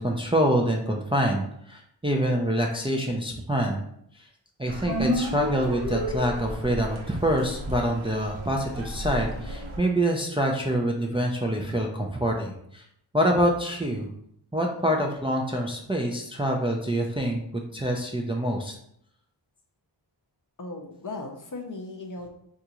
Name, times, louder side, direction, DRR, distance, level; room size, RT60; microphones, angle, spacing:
voice 1, 0.0-3.8 4.2-4.3 4.6-12.8 13.1-14.1 14.5-18.7, right 1 dB, 15° right, 1 dB, 0.4 m, -26 dB
sound 1, 4.7-9.8, equal, 85° right, 0.8 m, -37 dB
sound 2, 4.8-6.8, equal, 55° right, 0.7 m, -29 dB
voice 2, 20.6-22.3, left 2 dB, 45° left, 2 dB, 0.6 m, -37 dB
3.8 x 2.4 x 2.9 m, 0.71 s
wide cardioid pair, 55°, 46 cm